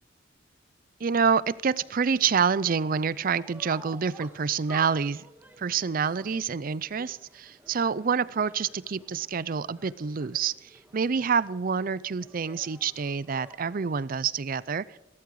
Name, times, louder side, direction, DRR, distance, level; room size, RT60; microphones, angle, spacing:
voice 1, 1.0-5.3 5.6-15.0, right 6 dB, 50° right, 19 dB, 0.5 m, -27 dB
sound 1, 2.1-14.0, right 1 dB, 10° right, 1.5 m, -52 dB
17.0 x 13.5 x 4.8 m, 0.94 s
head